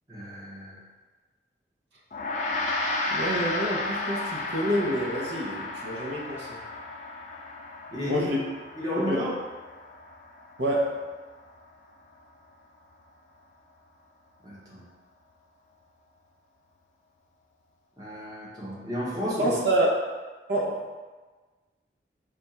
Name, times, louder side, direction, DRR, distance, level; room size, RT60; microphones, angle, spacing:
voice 1, 0.1-0.8 7.9-8.3 8.7-9.3 14.4-14.8 18.0-19.6, equal, 20° right, -7 dB, 1.0 m, -32 dB
Gong, 2.1-11.6, left 2 dB, 45° left, 0.4 m, -33 dB
voice 2, 3.1-6.6 8.0-8.4 9.0-9.2 10.6-11.0 19.4-19.9 20.5-21.0, right 1 dB, 80° right, -2 dB, 0.8 m, -27 dB
3.4 x 2.4 x 4.1 m, 1.3 s
head